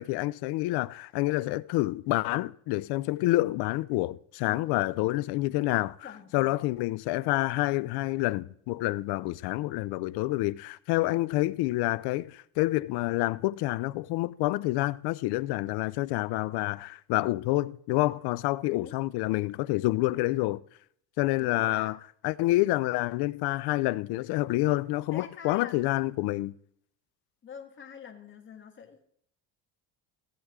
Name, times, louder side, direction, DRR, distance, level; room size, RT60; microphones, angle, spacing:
voice 1, 0.0-20.6 21.2-22.0 22.2-26.5, left 19 dB, 75° left, 0.6 m, -28 dB
voice 2, 6.0-6.6 18.7-19.0 21.4-22.0 25.1-26.1 27.4-29.1, left 6 dB, 30° left, 1.6 m, -46 dB
15.5 x 8.1 x 3.6 m
cardioid pair, 140°, 40 cm